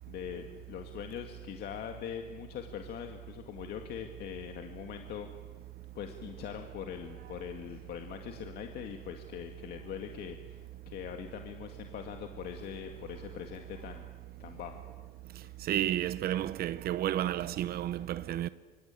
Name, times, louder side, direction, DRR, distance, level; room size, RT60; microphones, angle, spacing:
voice 1, 0.1-5.3 6.0-14.1 14.4-14.8, left 9 dB, 70° left, 2.1 m, -42 dB
voice 2, 15.7-18.5, right 12 dB, 65° right, 0.9 m, -31 dB
25.0 x 25.0 x 9.1 m
cardioid pair, 110°, 17 cm